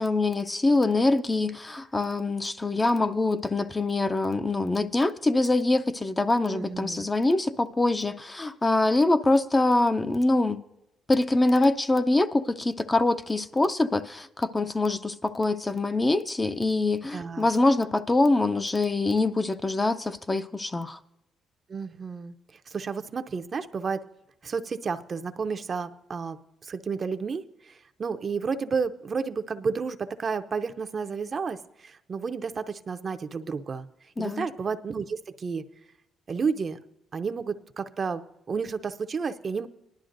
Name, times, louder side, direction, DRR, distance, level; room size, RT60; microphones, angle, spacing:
voice 1, 0.0-10.6 11.1-21.0 34.2-34.5, left 2 dB, 20° left, 0.5 m, -24 dB
voice 2, 6.5-7.1 17.1-17.5 21.7-22.3 22.7-24.0 24.4-33.9 34.2-35.6 36.3-36.8 37.1-39.7, right 5 dB, 40° right, 0.6 m, -31 dB
19.0 x 11.5 x 2.6 m
cardioid pair, 90°, 0 cm